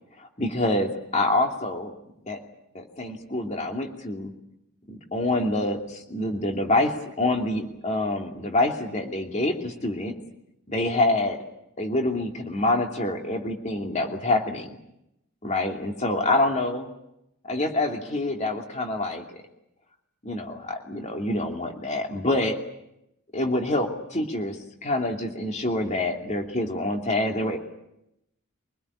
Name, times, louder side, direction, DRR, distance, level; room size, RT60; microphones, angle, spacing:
voice 1, 0.2-1.9 2.3-2.4 2.7-4.3 4.9-10.1 10.7-11.4 11.8-14.8 15.4-16.9 17.5-19.2 20.2-22.6 23.3-24.6 24.8-27.6, left 2 dB, 30° left, 2 dB, 2.8 m, -26 dB
24.5 x 20.0 x 9.9 m, 0.84 s
head